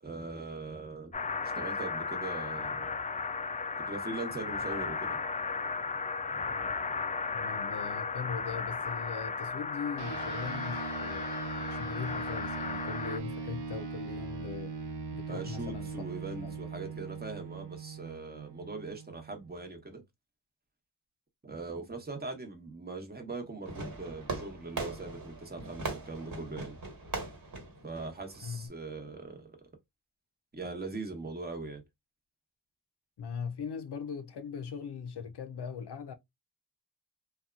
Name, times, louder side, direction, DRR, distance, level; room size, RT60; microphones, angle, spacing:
voice 1, 0.0-1.1 1.4-2.9 3.8-5.2 15.3-20.0 21.4-26.8 27.8-29.5 30.5-31.8, right 3 dB, 25° right, 0.9 m, -41 dB
sound 1, 1.1-13.2, left 4 dB, 20° left, 0.3 m, -35 dB
voice 2, 7.3-14.7 15.1-15.9 16.4-16.6 28.4-28.7 33.2-36.1, left 6 dB, 85° left, 0.6 m, -40 dB
sound 2, 10.0-19.7, right 4 dB, 75° right, 0.6 m, -40 dB
Fireworks, 23.6-28.7, right 3 dB, 55° right, 1.4 m, -40 dB
2.7 x 2.3 x 2.4 m
cardioid pair, 45°, 39 cm